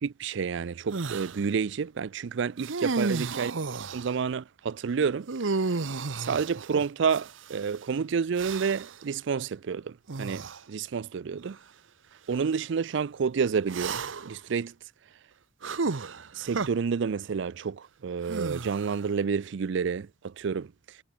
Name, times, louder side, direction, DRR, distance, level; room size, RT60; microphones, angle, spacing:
voice 1, 0.0-3.5 3.9-5.3 6.2-11.6 12.3-14.7 16.4-20.7, right 6 dB, 70° right, 0.4 m, -29 dB
sound 1, 0.9-1.4 2.6-4.1 5.3-7.6 8.4-9.0 10.1-10.6 11.4-11.6 13.7-14.4 15.6-16.7 18.3-19.1, right 4 dB, 85° right, 0.9 m, -32 dB
head